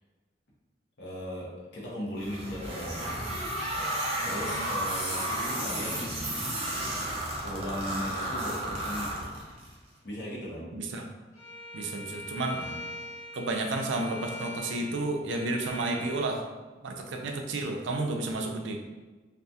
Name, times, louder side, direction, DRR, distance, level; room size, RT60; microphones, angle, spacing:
voice 1, 1.0-3.1 4.2-6.2 7.4-9.3 10.0-10.8 12.5-12.8, equal, 70° left, -4 dB, 0.8 m, -38 dB
sound 1, 2.2-9.7, right 1 dB, 35° right, 0.6 m, -32 dB
voice 2, 10.7-11.0 11.7-12.6 13.3-16.5 16.8-18.8, right 2 dB, 85° right, 3 dB, 0.4 m, -31 dB
Bowed string instrument, 11.3-16.2, left 1 dB, 45° left, 0.9 m, -42 dB
2.7 x 2.3 x 2.3 m, 1.3 s
head